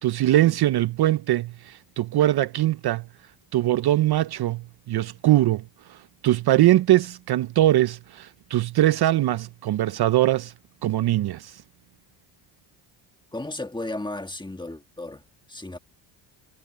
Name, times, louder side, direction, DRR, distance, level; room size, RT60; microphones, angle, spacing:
voice 1, 0.0-3.0 3.5-5.6 5.9-10.5 10.8-11.6, right 14 dB, 50° right, 0.6 m, -22 dB
voice 2, 13.3-15.2 15.5-15.8, left 2 dB, 10° left, 1.6 m, -34 dB
cardioid pair, 90°, 50 cm